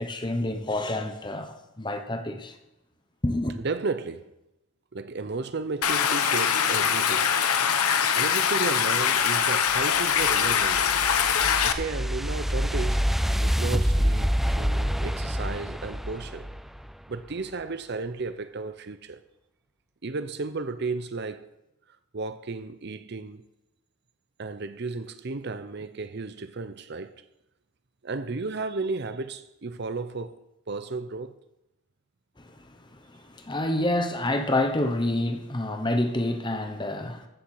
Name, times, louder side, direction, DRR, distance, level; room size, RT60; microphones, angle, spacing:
voice 1, 0.0-2.5 3.2-3.6 32.4-32.8 33.1-37.3, left 1 dB, 20° left, 1.0 m, -28 dB
voice 2, 3.6-4.3 4.9-7.3 8.2-10.9 11.6-13.0 13.4-16.5 17.1-19.2 20.0-21.5 21.9-23.5 24.4-27.1 28.0-30.4 30.7-31.4, right 3 dB, 50° right, 0.6 m, -33 dB
Stream, 5.8-11.7, left 7 dB, 90° left, 1.0 m, -23 dB
sound 1, 9.7-17.0, equal, ahead, 0.3 m, -27 dB
15.0 x 6.9 x 6.4 m
head